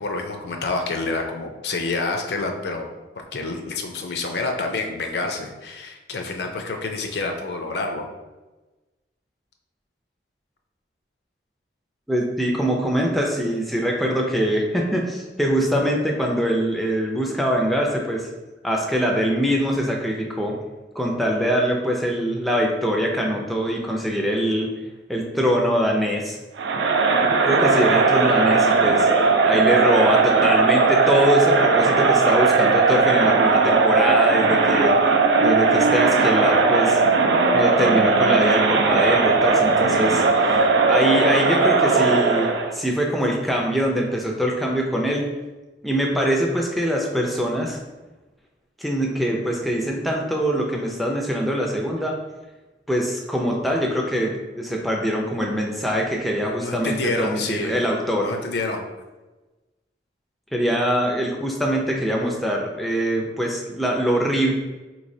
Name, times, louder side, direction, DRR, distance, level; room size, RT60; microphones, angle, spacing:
voice 1, 0.0-2.9 3.3-8.1 56.6-57.8 58.2-58.8, left 3 dB, 70° left, 3 dB, 0.5 m, -28 dB
voice 2, 12.1-18.3 18.6-20.5 21.0-24.7 25.1-26.4 27.4-35.0 35.4-37.0 37.5-45.3 45.8-47.8 48.8-52.2 52.9-58.3 60.5-64.5, equal, ahead, -1 dB, 0.4 m, -23 dB
Crowd, 26.6-42.7, right 4 dB, 85° right, 0.4 m, -18 dB
4.2 x 3.1 x 2.6 m, 1.1 s
head